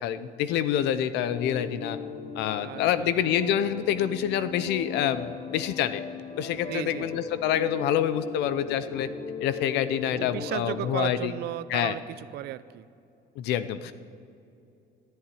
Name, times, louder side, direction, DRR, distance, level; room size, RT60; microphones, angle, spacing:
voice 1, 0.0-2.0 2.4-6.0 6.4-9.1 9.4-11.3 11.7-12.0 13.4-13.9, left 10 dB, 90° left, 14 dB, 0.7 m, -27 dB
sound 1, 1.3-10.9, left 5 dB, 40° left, 1.1 m, -39 dB
voice 2, 2.6-3.2 6.7-7.3 10.1-12.9, right 13 dB, 75° right, 16 dB, 0.5 m, -35 dB
13.5 x 7.9 x 10.0 m, 2.6 s
cardioid pair, 110°, 17 cm